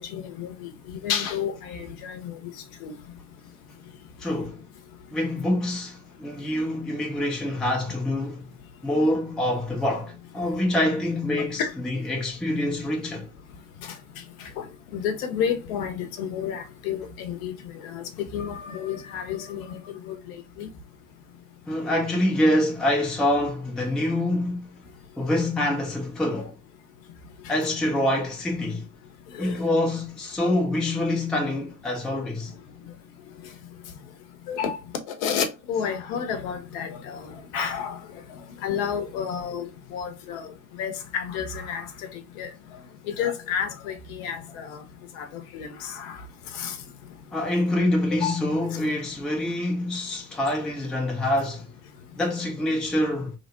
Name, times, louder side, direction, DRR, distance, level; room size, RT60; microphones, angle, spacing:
voice 1, 0.0-2.4 2.8-2.9 11.6-11.7 13.8-13.9 14.4-14.7 14.9-17.5 17.8-20.7 26.3-26.4 29.3-29.6 34.5-34.8 35.1-38.0 38.6-40.5 40.8-41.9 42.4-42.5 43.1-44.8 45.2-46.2 46.5-46.7 48.1-48.4, left 7 dB, 55° left, 0.7 m, -31 dB
voice 2, 4.2-4.6 5.1-8.5 8.8-13.3 21.7-24.8 25.2-26.5 27.5-28.9 29.4-32.5 47.3-51.7 52.2-53.3, left 1 dB, ahead, 0.4 m, -26 dB
3.0 x 2.0 x 2.4 m
figure-of-eight pair, 60°, 49 cm